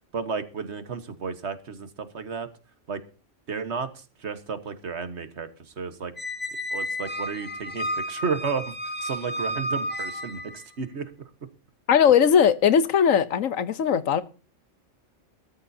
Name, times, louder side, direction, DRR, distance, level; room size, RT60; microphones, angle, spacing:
voice 1, 0.1-2.5 2.9-3.0 3.5-5.5 5.8-6.1 6.7-8.7 9.0-11.1, right 5 dB, 60° right, 1.6 m, -32 dB
Squeak, 6.2-10.6, equal, 10° left, 1.2 m, -32 dB
voice 2, 11.9-14.2, left 8 dB, 90° left, 1.3 m, -19 dB
21.0 x 13.5 x 2.8 m
omnidirectional pair, 1.3 m